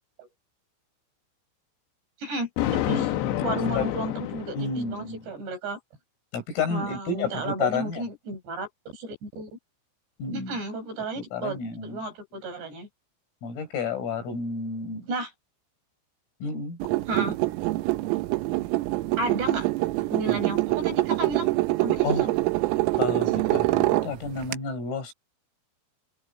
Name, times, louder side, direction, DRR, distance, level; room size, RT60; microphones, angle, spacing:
voice 1, 2.2-3.1 3.4-5.8 6.7-9.5 10.3-12.9 15.1-15.3 17.1-17.4 19.2-19.7 20.1-21.5 21.8-22.4 23.7-23.8, right 2 dB, 55° right, 10.0 m, -33 dB
Thunder, 2.6-5.1, left 13 dB, 70° left, 3.0 m, -28 dB
voice 2, 3.5-3.9 4.5-5.2 6.3-8.0 10.2-10.6 11.2-12.0 13.4-15.1 16.4-16.8 20.3-20.4 22.0-22.3 23.0-25.1, left 5 dB, 85° left, 9.4 m, -31 dB
sound 1, 16.8-24.5, right 20 dB, 85° right, 3.6 m, -25 dB
omnidirectional pair, 5.8 m